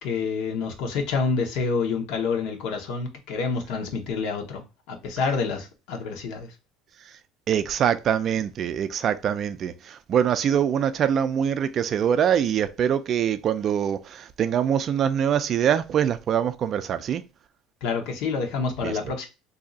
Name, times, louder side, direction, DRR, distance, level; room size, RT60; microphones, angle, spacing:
voice 1, 0.0-4.6 4.9-6.5 17.8-19.3, left 4 dB, 70° left, 1.0 m, -28 dB
voice 2, 7.5-17.2 18.8-19.0, right 9 dB, 40° right, 0.3 m, -24 dB
2.7 x 2.4 x 3.8 m
cardioid pair, 140°, 0 cm